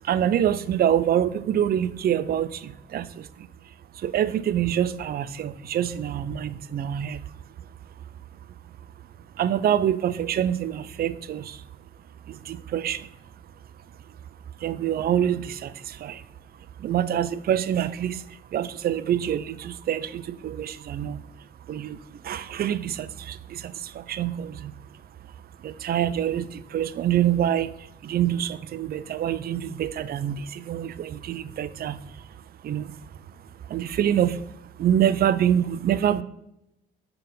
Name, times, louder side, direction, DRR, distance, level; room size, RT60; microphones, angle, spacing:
voice 1, 0.0-3.5 3.9-7.3 9.4-11.6 12.3-13.1 14.6-16.2 16.5-24.7 25.6-33.4 33.6-36.2, right 10 dB, 50° right, 15 dB, 0.4 m, -26 dB
5.3 x 4.5 x 5.3 m, 0.83 s
cardioid pair, 90°, 20 cm